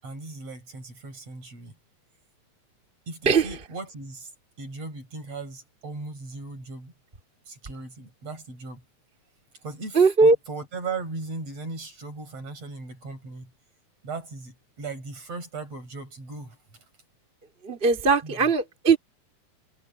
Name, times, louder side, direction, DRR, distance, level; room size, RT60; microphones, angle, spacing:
voice 1, 0.0-1.7 3.1-4.3 4.6-6.9 7.5-8.8 9.6-13.5 14.0-16.6 18.2-18.3, right 3 dB, 55° right, 7.6 m, -37 dB
voice 2, 9.9-10.4 17.6-19.0, right 4 dB, 20° right, 2.6 m, -19 dB
omnidirectional pair, 3.4 m